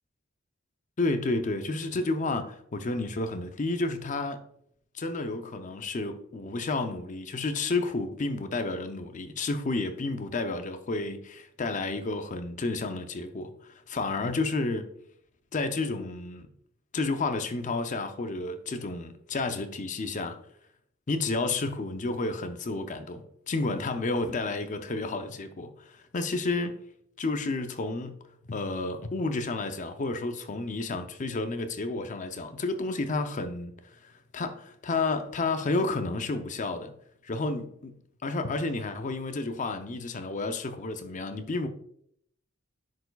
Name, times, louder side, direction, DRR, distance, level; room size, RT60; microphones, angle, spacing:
voice 1, 1.0-4.4 4.9-14.9 15.5-16.5 16.9-20.4 21.1-26.8 27.2-28.2 28.5-36.9 37.2-37.9 38.2-41.7, left 3 dB, 35° left, 0.5 m, -31 dB
10.5 x 4.6 x 2.3 m
head